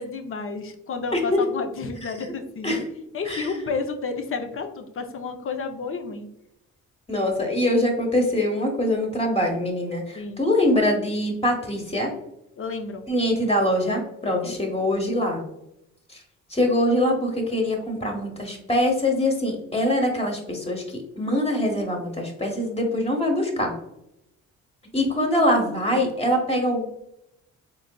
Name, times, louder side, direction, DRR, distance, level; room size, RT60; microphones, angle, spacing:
voice 1, 0.0-2.8 3.1-6.3 10.1-10.4 12.6-13.1 14.4-14.8, left 4 dB, 45° left, 5 dB, 0.7 m, -31 dB
voice 2, 1.1-1.4 2.6-2.8 3.3-3.6 7.1-12.1 13.1-15.4 16.5-23.7 24.9-26.8, left 1 dB, 20° left, 1 dB, 1.2 m, -23 dB
3.9 x 3.8 x 2.3 m, 0.81 s
cardioid pair, 90°, 30 cm